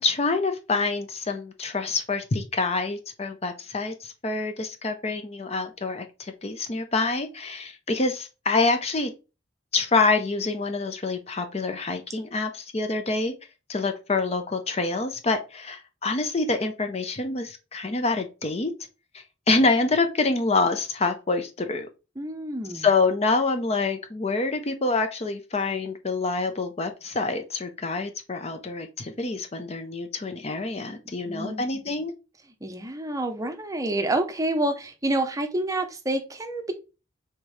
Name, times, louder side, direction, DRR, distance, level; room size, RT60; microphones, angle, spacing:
voice 1, 0.0-9.1 9.7-13.3 13.7-18.7 19.1-21.9 22.7-32.1, left 3 dB, 35° left, 0.6 m, -26 dB
voice 2, 22.2-22.9 31.2-31.6 32.6-36.7, right 1 dB, 20° right, 0.6 m, -28 dB
4.5 x 3.6 x 3.2 m
head